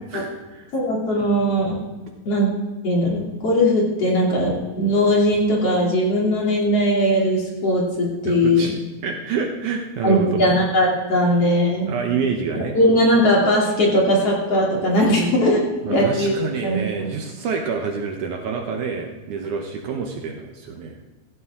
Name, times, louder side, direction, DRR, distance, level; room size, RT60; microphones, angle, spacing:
voice 1, 0.1-0.7 8.3-8.7 9.0-10.4 11.9-12.8 15.8-21.0, right 5 dB, 70° right, 3 dB, 2.3 m, -27 dB
voice 2, 0.7-1.8 2.3-2.5 2.8-8.7 10.0-11.9 12.7-16.4 16.6-17.1, equal, 45° left, -3 dB, 3.6 m, -19 dB
15.5 x 15.5 x 3.6 m, 1.3 s
omnidirectional pair, 4.2 m